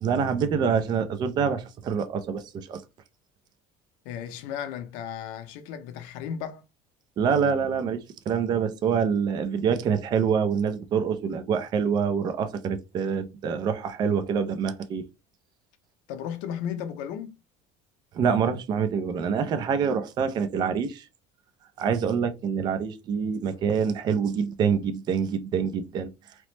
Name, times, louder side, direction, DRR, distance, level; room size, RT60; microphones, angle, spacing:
voice 1, 0.0-2.8 7.2-15.1 18.1-21.1 21.8-26.1, right 6 dB, 30° right, 0.3 m, -26 dB
voice 2, 4.0-6.6 16.1-17.4, left 8 dB, 70° left, 0.6 m, -35 dB
2.9 x 2.0 x 3.1 m
cardioid pair, 165°, 15 cm